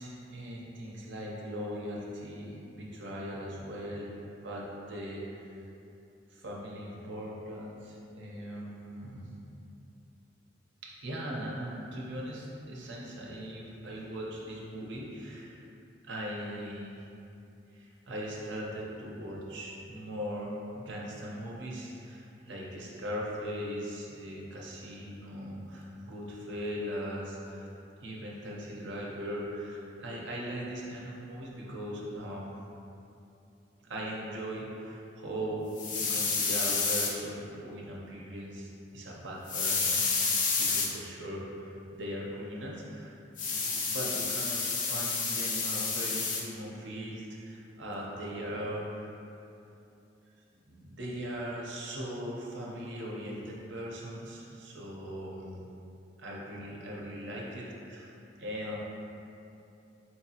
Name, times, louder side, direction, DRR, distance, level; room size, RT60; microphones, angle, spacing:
voice 1, 0.0-4.1 4.3-5.6 6.3-9.3 10.8-15.6 16.0-17.1 17.7-27.7 28.0-32.6 33.9-40.3 40.6-49.1 50.7-55.7 56.2-58.8, equal, 85° right, -3 dB, 0.7 m, -39 dB
sound 1, 35.8-37.1 39.5-40.9 43.4-46.4, left 4 dB, 45° left, 0.4 m, -29 dB
4.4 x 2.8 x 2.8 m, 2.7 s
head